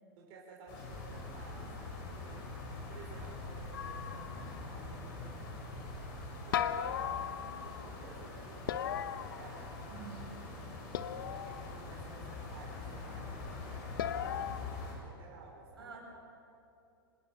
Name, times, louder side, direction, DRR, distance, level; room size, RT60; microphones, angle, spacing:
voice 1, 0.2-2.4 2.9-5.6 6.4-9.8 10.1-10.8 11.3-15.9, right 4 dB, 45° right, -2 dB, 4.9 m, -55 dB
sound 1, 0.7-14.9, left 3 dB, 45° left, 7.5 m, -44 dB
sound 2, 3.7-4.7 6.5-7.9 8.7-10.0 10.9-11.8 14.0-14.6, left 9 dB, 65° left, 1.0 m, -37 dB
voice 2, 9.9-10.4 15.8-16.0, right 7 dB, 75° right, -1 dB, 7.7 m, -48 dB
25.0 x 20.0 x 6.8 m, 2.6 s
figure-of-eight pair, 100°, 13 cm